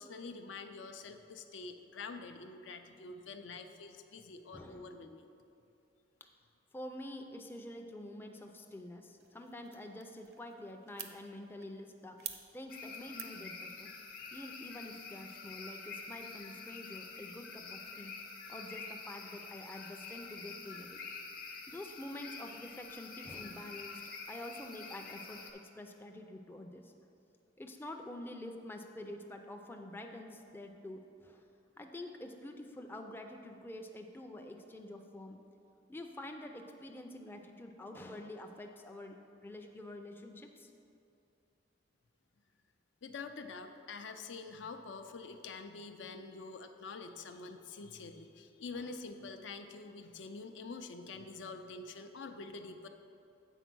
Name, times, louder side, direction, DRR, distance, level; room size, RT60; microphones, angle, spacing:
voice 1, 0.0-5.3 43.0-52.9, left 4 dB, 75° left, 7 dB, 0.5 m, -46 dB
voice 2, 4.5-5.0 6.2-6.3 6.7-13.9 14.3-18.2 18.5-21.0 21.7-24.0 24.3-26.9 27.6-31.5 31.8-35.4 35.9-40.7 48.7-48.9, left 1 dB, 10° left, 3 dB, 0.4 m, -47 dB
sound 1, 9.2-15.1, right 10 dB, 55° right, 0.5 m, -51 dB
sound 2, 12.7-25.5, left 4 dB, 50° left, 0.8 m, -47 dB
8.1 x 4.4 x 6.0 m, 2.7 s
head